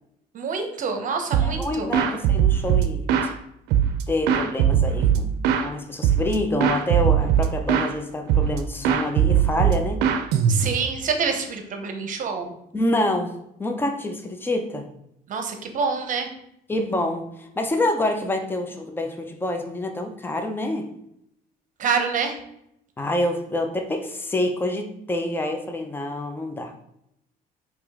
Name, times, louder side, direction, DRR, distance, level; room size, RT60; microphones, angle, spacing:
voice 1, 0.3-1.9 10.5-12.5 15.3-16.3 21.8-22.4, right 5 dB, 50° right, 5 dB, 0.8 m, -26 dB
sound 1, 1.3-1.6 1.9-3.3 3.7-5.7 6.0-6.4 6.6-7.9 8.3-8.6 8.8-10.9, right 9 dB, 90° right, 0.5 m, -20 dB
voice 2, 1.4-3.3 4.1-5.3 5.6-10.0 12.7-14.9 16.7-20.9 23.0-26.7, left 1 dB, 10° left, 4 dB, 0.6 m, -27 dB
4.9 x 3.0 x 3.6 m, 0.77 s
cardioid pair, 110°, 17 cm